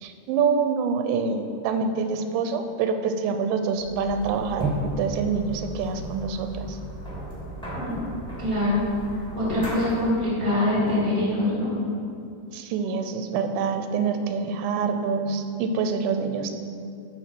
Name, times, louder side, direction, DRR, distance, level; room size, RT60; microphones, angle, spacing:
voice 1, 0.0-6.8 12.5-16.5, right 5 dB, 90° right, 7 dB, 3.0 m, -26 dB
sound 1, 3.7-10.2, right 1 dB, 5° left, 0.8 m, -34 dB
voice 2, 8.4-8.8 9.3-11.7, left 1 dB, 30° left, -7 dB, 1.1 m, -24 dB
11.5 x 4.8 x 5.8 m, 2.4 s
omnidirectional pair, 5.1 m